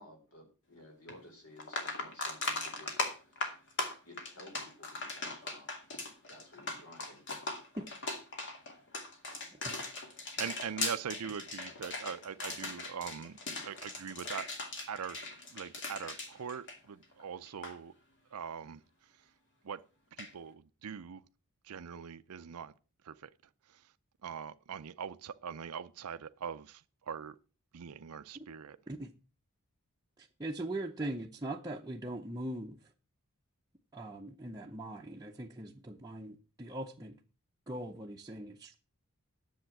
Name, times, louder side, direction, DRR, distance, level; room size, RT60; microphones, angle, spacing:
voice 1, 0.0-3.0 4.0-7.2, left 1 dB, 70° left, 4.5 m, -55 dB
sound 1, 1.1-1.2 1.6-17.2 17.5-17.7 20.2-20.3, left 2 dB, 55° left, 2.4 m, -39 dB
voice 2, 10.4-13.4 13.6-15.2 15.5-17.9 18.3-18.8 19.6-19.8 20.2-21.2 21.6-22.7 23.0-23.3 23.7-23.8 24.2-27.4 27.7-28.8, right 7 dB, 75° right, 0.5 m, -42 dB
voice 3, 30.2-32.8 33.9-37.2 37.7-38.8, right 1 dB, 15° right, 0.7 m, -41 dB
10.5 x 7.3 x 5.9 m
head